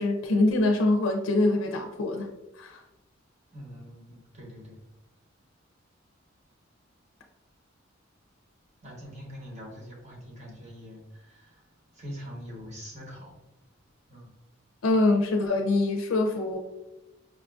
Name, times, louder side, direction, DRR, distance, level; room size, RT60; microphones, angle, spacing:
voice 1, 0.0-2.3 2.6-2.8 14.8-16.6, left 2 dB, 75° left, 3 dB, 0.4 m, -24 dB
voice 2, 3.5-4.8 8.8-11.6 11.9-13.3 14.1-14.3, equal, 35° right, -2 dB, 0.9 m, -43 dB
4.9 x 2.5 x 2.3 m, 0.94 s
head